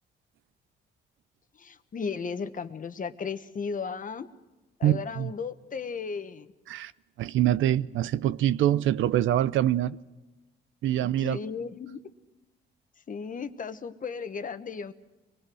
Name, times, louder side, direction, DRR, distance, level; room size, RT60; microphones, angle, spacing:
voice 1, 1.6-4.3 4.8-6.5 11.2-12.0 13.1-14.9, left 5 dB, 40° left, 1.3 m, -35 dB
voice 2, 4.8-5.3 6.7-6.9 7.2-10.0 10.8-11.4, right 12 dB, 75° right, 0.6 m, -25 dB
24.5 x 20.0 x 6.3 m
cardioid pair, 90°, 20 cm